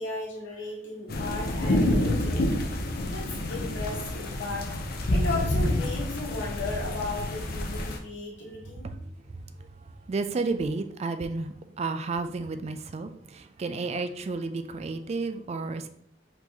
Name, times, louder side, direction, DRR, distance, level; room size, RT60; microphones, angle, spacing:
voice 1, 0.0-2.4 3.1-4.7 5.1-8.9, left 3 dB, 85° left, -3 dB, 1.6 m, -35 dB
sound 1, 1.1-8.0, left 1 dB, 55° left, 0.6 m, -28 dB
voice 2, 10.1-15.9, right 3 dB, 35° right, 9 dB, 0.3 m, -32 dB
4.6 x 2.9 x 4.0 m, 0.64 s
head